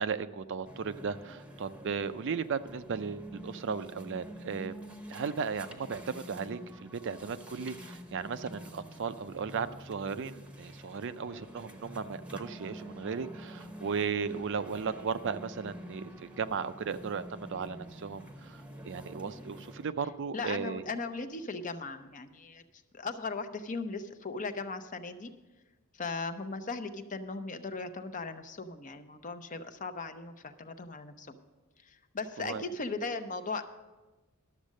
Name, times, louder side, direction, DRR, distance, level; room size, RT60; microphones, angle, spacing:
voice 1, 0.0-4.8 5.1-20.8 32.4-32.6, right 6 dB, 55° right, 12 dB, 0.5 m, -36 dB
sound 1, 0.6-19.9, equal, 5° right, 0.9 m, -48 dB
voice 2, 20.3-22.6 22.9-25.3 26.0-31.3 31.8-33.6, left 3 dB, 35° left, 9 dB, 0.7 m, -38 dB
12.0 x 7.3 x 6.4 m, 1.2 s
head